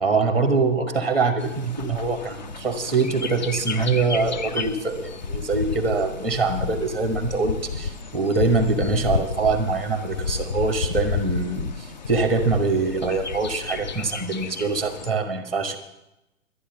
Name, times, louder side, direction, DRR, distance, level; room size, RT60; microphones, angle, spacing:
voice 1, 0.0-15.8, right 4 dB, ahead, 9 dB, 0.9 m, -24 dB
Bird, 1.4-15.1, left 5 dB, 35° left, 0.5 m, -31 dB
11.5 x 9.9 x 6.8 m, 0.90 s
figure-of-eight pair, 130°, 41 cm